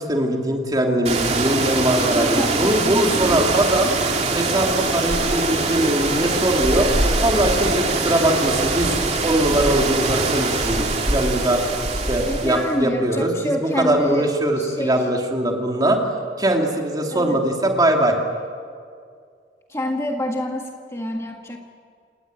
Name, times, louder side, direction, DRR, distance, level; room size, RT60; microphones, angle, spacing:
voice 1, 0.0-3.9 4.3-8.9 9.2-11.6 12.1-16.0 16.4-18.2, right 1 dB, 25° right, 1 dB, 3.0 m, -21 dB
sound 1, 1.0-12.7, right 3 dB, 40° right, 2.7 m, -22 dB
voice 2, 2.0-3.4 12.2-14.3 14.6-15.1 17.1-17.4 19.7-21.6, equal, 15° left, 2 dB, 1.6 m, -27 dB
28.0 x 19.0 x 9.2 m, 2.2 s
head